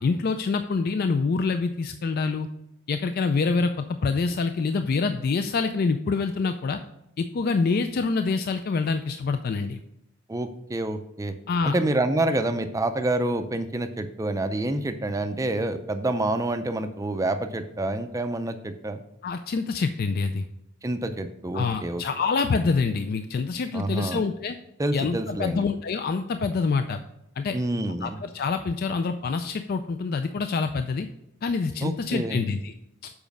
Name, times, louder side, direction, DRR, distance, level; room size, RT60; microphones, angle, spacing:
voice 1, 0.0-2.5 2.9-6.8 7.2-9.8 11.5-11.7 19.2-20.4 21.5-24.6 24.9-27.0 27.4-27.6 28.0-31.1 31.4-32.7 33.0-33.1, left 4 dB, 45° left, 8 dB, 0.3 m, -26 dB
voice 2, 10.3-11.4 11.6-19.0 20.8-22.0 23.7-24.2 24.8-25.6 27.5-28.2 31.8-32.4, right 2 dB, 15° right, 8 dB, 0.5 m, -27 dB
7.1 x 5.0 x 5.3 m, 0.82 s
head